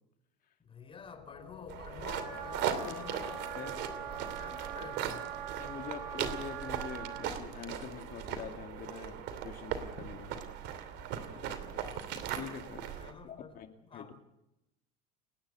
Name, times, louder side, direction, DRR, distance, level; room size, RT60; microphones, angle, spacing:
voice 1, 0.6-5.5 11.3-11.9 13.0-13.5 13.8-14.2, left 5 dB, 25° left, 8 dB, 4.7 m, -50 dB
sound 1, 0.8-10.6, left 10 dB, 70° left, 3.5 m, -54 dB
sound 2, 1.7-13.1, right 8 dB, 60° right, 2.9 m, -39 dB
Wind instrument woodwind instrument, 2.0-7.3, right 9 dB, 80° right, 6.1 m, -42 dB
voice 2, 3.6-3.9 5.5-10.5 11.3-11.9 12.3-13.0 13.2-14.1, left 8 dB, 45° left, 5 dB, 2.6 m, -45 dB
29.5 x 10.5 x 8.8 m, 0.88 s
supercardioid pair, 95°, 21 cm